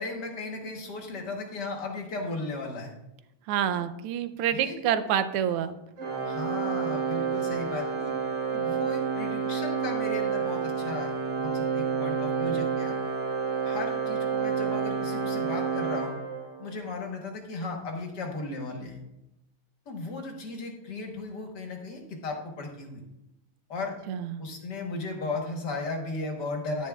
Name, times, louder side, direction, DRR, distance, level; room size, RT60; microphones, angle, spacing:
voice 1, 0.0-2.9 4.5-5.0 6.2-8.1 8.5-11.1 11.4-13.0 13.6-16.2 16.6-19.0 19.8-23.0 23.7-24.0 24.4-26.9, left 3 dB, 55° left, 2 dB, 1.7 m, -36 dB
voice 2, 3.5-5.8 24.1-24.4, right 9 dB, 90° right, 11 dB, 1.6 m, -27 dB
Organ, 6.0-16.8, right 6 dB, 55° right, 1.9 m, -29 dB
10.5 x 10.5 x 2.3 m, 0.90 s
omnidirectional pair, 2.4 m